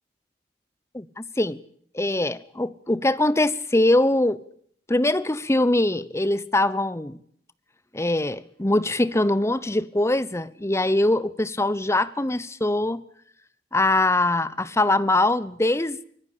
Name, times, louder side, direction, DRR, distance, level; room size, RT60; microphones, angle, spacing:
voice 1, 0.9-1.6 1.9-4.4 4.9-7.2 7.9-13.0 13.7-16.0, left 2 dB, 15° left, 1.0 m, -22 dB
24.5 x 21.0 x 8.6 m
head